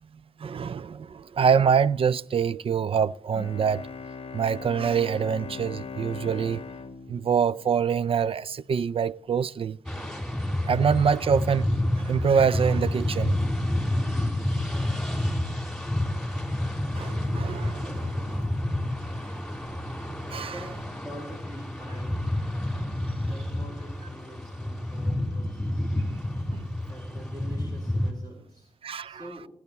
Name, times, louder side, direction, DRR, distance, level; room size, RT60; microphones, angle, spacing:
voice 1, 0.4-3.9 4.3-6.6 7.1-9.8 10.6-11.7 12.0-13.4 17.0-18.5 20.1-20.6 26.1-26.2 26.5-26.7 28.8-29.3, right 7 dB, 50° right, 0.4 m, -25 dB
Bowed string instrument, 3.3-8.3, left 5 dB, 55° left, 0.8 m, -40 dB
sound 1, 9.9-28.1, left 1 dB, ahead, 3.4 m, -29 dB
voice 2, 20.4-20.8 21.0-22.2 23.2-26.0 26.9-28.7 29.0-29.5, right 1 dB, 30° right, 3.4 m, -45 dB
17.5 x 11.0 x 4.2 m
cardioid pair, 80°, 12 cm